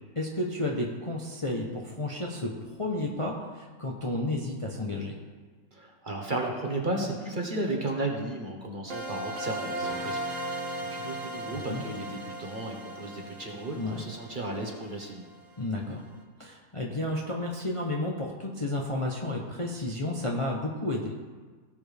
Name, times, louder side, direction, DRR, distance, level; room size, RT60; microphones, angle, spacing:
voice 1, 0.2-2.5 2.8-5.2 11.5-11.8 13.8-14.0 15.6-16.0 16.4-21.1, left 1 dB, 25° left, -1 dB, 0.9 m, -32 dB
voice 2, 5.7-10.2 10.5-15.3, right 2 dB, 35° right, 0 dB, 1.4 m, -34 dB
sound 1, 8.9-15.6, right 1 dB, 60° right, 1.6 m, -37 dB
17.5 x 7.0 x 3.5 m, 1.4 s
omnidirectional pair, 1.5 m